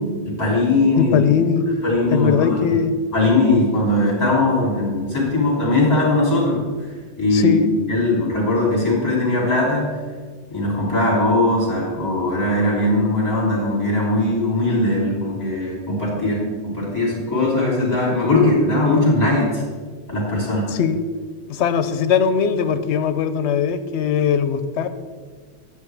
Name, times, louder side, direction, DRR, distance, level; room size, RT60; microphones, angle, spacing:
voice 1, 0.4-1.2 1.8-2.8 3.1-6.6 7.2-7.6 7.9-9.9 10.5-19.6 20.1-20.6, left 2 dB, 35° left, -5 dB, 3.2 m, -19 dB
voice 2, 1.0-1.7 2.1-3.0 7.3-7.7 20.7-21.0 21.5-24.9, left 7 dB, 85° left, 11 dB, 0.9 m, -20 dB
9.9 x 8.3 x 3.4 m, 1.5 s
omnidirectional pair, 1.1 m